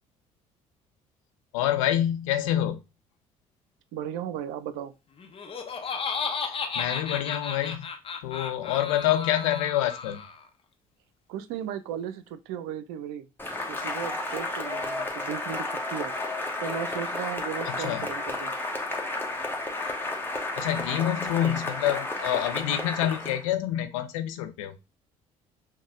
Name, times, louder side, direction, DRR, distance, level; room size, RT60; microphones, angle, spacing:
voice 1, 1.5-2.8 6.4-7.9 8.2-10.2 17.6-18.1 20.6-24.8, left 12 dB, 70° left, 0.6 m, -27 dB
voice 2, 3.9-4.9 11.3-13.3 13.7-16.1 16.6-18.5, right 9 dB, 65° right, 0.5 m, -36 dB
Laughter, 5.2-10.4, left 5 dB, 30° left, 0.8 m, -34 dB
Cheering / Applause, 13.4-23.4, left 2 dB, 10° left, 1.1 m, -32 dB
6.0 x 2.1 x 3.6 m
figure-of-eight pair, 50°, 17 cm